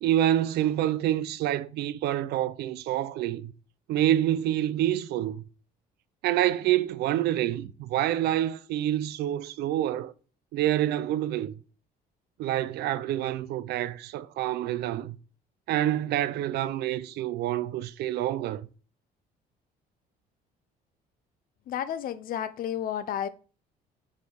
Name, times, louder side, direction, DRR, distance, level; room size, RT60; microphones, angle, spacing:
voice 1, 0.0-3.5 3.9-5.4 6.2-10.1 10.5-11.5 12.4-15.2 15.7-18.7, right 12 dB, 75° right, 0.5 m, -27 dB
voice 2, 21.7-23.3, left 10 dB, 60° left, 0.5 m, -31 dB
6.6 x 3.5 x 4.7 m
cardioid pair, 110°, 17 cm